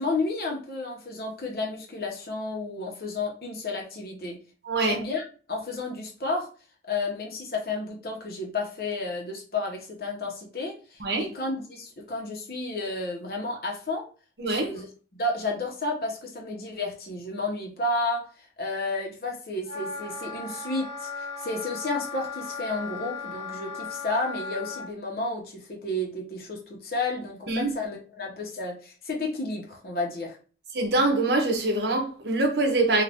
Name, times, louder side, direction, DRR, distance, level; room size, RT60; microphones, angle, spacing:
voice 1, 0.0-4.4 4.8-5.2 5.5-6.5 6.9-14.1 14.4-14.9 15.2-30.4, left 2 dB, 55° left, 0.9 m, -32 dB
voice 2, 4.7-5.0 11.0-11.2 14.4-14.7 27.5-27.7 30.7-33.0, right 2 dB, 70° right, 0.7 m, -24 dB
Wind instrument woodwind instrument, 19.6-24.9, left 4 dB, 30° left, 1.4 m, -36 dB
2.5 x 2.5 x 3.4 m
head